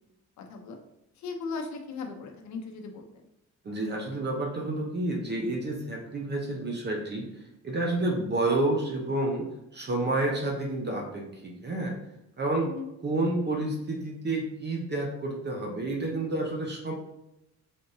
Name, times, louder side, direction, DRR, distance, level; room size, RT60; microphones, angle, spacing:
voice 1, 0.4-0.8 1.2-3.0 12.5-12.9, left 4 dB, 65° left, 4 dB, 0.8 m, -37 dB
voice 2, 3.6-7.2 7.6-9.5 9.7-11.9 12.4-12.7 13.0-16.9, right 2 dB, 35° right, 1 dB, 0.8 m, -29 dB
3.8 x 3.5 x 2.7 m, 0.86 s
cardioid pair, 90°, 30 cm